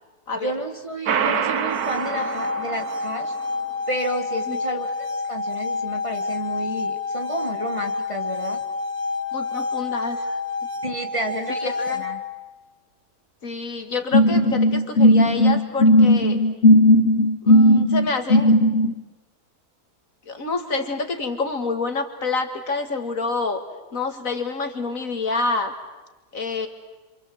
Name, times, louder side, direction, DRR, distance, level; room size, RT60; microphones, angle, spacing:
voice 1, 0.3-3.3 3.9-8.6 10.8-12.2, right 1 dB, 20° right, 4 dB, 2.0 m, -31 dB
sound 1, 1.1-3.5, right 7 dB, 80° right, 1.6 m, -26 dB
sound 2, 1.6-12.5, left 4 dB, 45° right, 1.8 m, -29 dB
voice 2, 9.3-10.3 11.5-12.0 13.4-16.4 17.4-18.5 20.3-23.6 23.9-25.7 26.3-26.7, left 3 dB, 65° left, 6 dB, 2.4 m, -27 dB
sound 3, 14.1-18.9, left 1 dB, 45° left, 1.5 m, -15 dB
27.0 x 26.5 x 7.9 m, 1.1 s
omnidirectional pair, 1.6 m